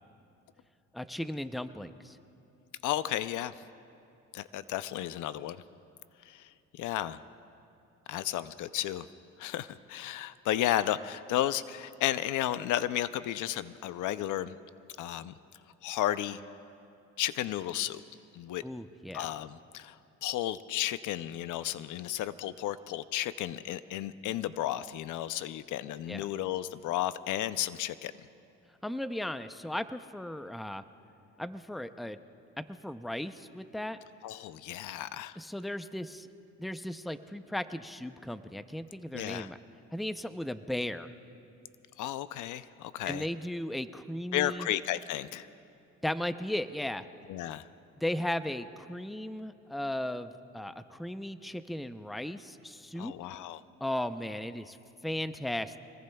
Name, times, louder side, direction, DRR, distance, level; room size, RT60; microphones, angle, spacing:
voice 1, 0.9-2.2 18.6-19.3 26.1-26.3 28.8-30.8 31.4-32.2 32.6-34.0 35.4-36.3 36.6-39.6 39.9-41.1 43.0-44.7 46.0-47.0 48.0-53.1 53.8-54.8 55.0-55.8, left 1 dB, ahead, 11 dB, 0.5 m, -36 dB
voice 2, 2.8-3.5 4.3-5.6 6.3-7.2 8.1-9.1 9.4-14.6 15.0-15.3 15.8-16.4 17.2-18.0 18.3-18.6 19.1-20.0 20.2-28.1 34.2-35.4 39.1-39.5 42.0-43.2 44.3-45.5 47.3-47.7 53.0-53.6, left 13 dB, 80° left, 14 dB, 0.5 m, -33 dB
26.5 x 20.0 x 2.3 m, 2.8 s
cardioid pair, 90°, 30 cm